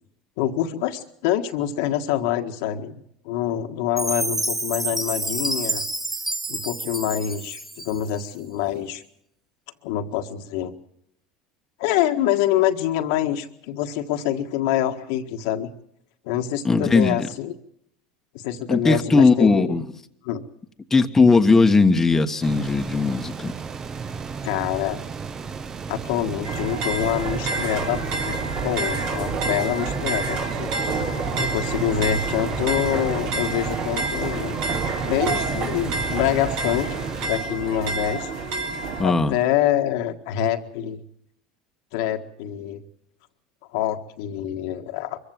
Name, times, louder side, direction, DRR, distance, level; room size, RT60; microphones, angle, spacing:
voice 1, 0.4-5.8 6.5-9.0 9.8-10.7 11.8-15.7 16.2-17.5 18.3-19.8 20.2-20.4 24.4-25.0 25.9-30.7 31.4-34.6 35.0-36.9 37.2-38.3 39.0-41.0 41.9-42.8 43.7-45.2, left 11 dB, 75° left, 5 dB, 1.7 m, -26 dB
Chime, 4.0-8.2, right 2 dB, 10° right, 1.5 m, -28 dB
voice 2, 16.6-17.3 18.7-19.8 20.9-23.5 39.0-39.3, left 3 dB, 15° left, 5 dB, 1.4 m, -18 dB
sound 1, 22.4-37.3, right 5 dB, 30° right, 1.2 m, -34 dB
sound 2, 26.4-39.0, right 3 dB, 60° right, 3.9 m, -28 dB
24.0 x 15.0 x 7.6 m, 0.74 s
hypercardioid pair, 95°, 2 cm